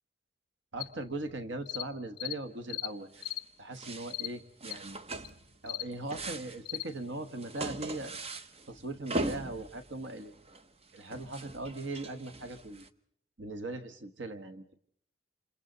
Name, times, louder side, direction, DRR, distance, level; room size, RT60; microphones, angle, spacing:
voice 1, 0.7-3.2 3.6-5.0 5.6-8.2 8.7-10.3 10.9-12.8 13.4-14.6, right 2 dB, 75° right, 9 dB, 1.3 m, -39 dB
sound 1, 0.8-0.9 1.7-1.9 2.2-2.4 2.7-2.9 3.2-3.4 4.1-4.3 4.7-4.8 5.2-5.3 5.7-5.9 6.7-6.9, left 16 dB, 50° left, 1.0 m, -37 dB
sound 2, 3.1-3.5 3.7-4.2 4.6-5.6 5.9-12.9, right 2 dB, 35° right, 0.9 m, -40 dB
28.5 x 27.0 x 4.0 m, 0.64 s
head